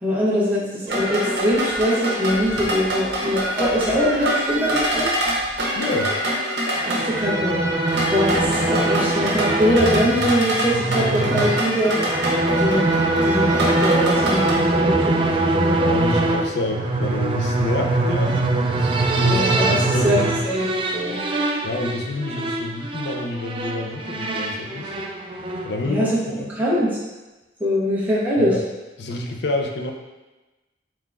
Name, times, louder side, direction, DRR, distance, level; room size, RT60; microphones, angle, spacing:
voice 1, 0.0-5.1 6.8-7.6 8.1-11.9 12.6-12.9 13.2-14.9 15.2-15.8 19.3-19.8 20.0-21.5 25.9-26.1 26.6-27.0 27.6-28.5, equal, 10° right, -8 dB, 1.0 m, -22 dB
sound 1, 0.9-14.5, right 1 dB, 75° right, 0.9 m, -25 dB
voice 2, 5.7-6.1 15.8-18.4 18.8-20.1 21.6-24.9 25.6-26.5 28.4-28.6 29.0-29.9, left 2 dB, 75° left, 3 dB, 0.5 m, -28 dB
sound 2, 6.8-25.8, right 2 dB, 30° right, 0.3 m, -23 dB
4.4 x 3.7 x 2.5 m, 1.1 s
head